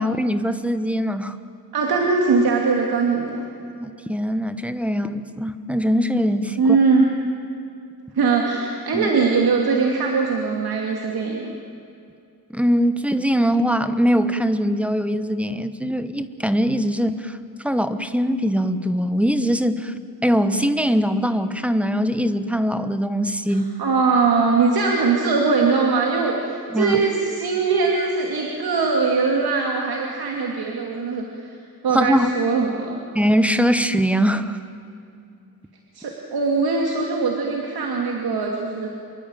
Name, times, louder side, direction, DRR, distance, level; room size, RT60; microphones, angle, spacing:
voice 1, 0.0-1.4 3.6-6.6 8.9-9.1 12.5-17.4 17.6-19.9 20.2-23.7 26.7-27.0 31.9-32.3 33.1-34.6, equal, 5° right, 11 dB, 1.0 m, -21 dB
voice 2, 1.7-3.5 6.6-7.1 8.1-11.5 23.5-31.6 31.8-33.0 35.9-38.9, right 4 dB, 75° right, 0 dB, 2.7 m, -21 dB
26.5 x 23.0 x 9.1 m, 2.6 s
wide cardioid pair, 150°, 37 cm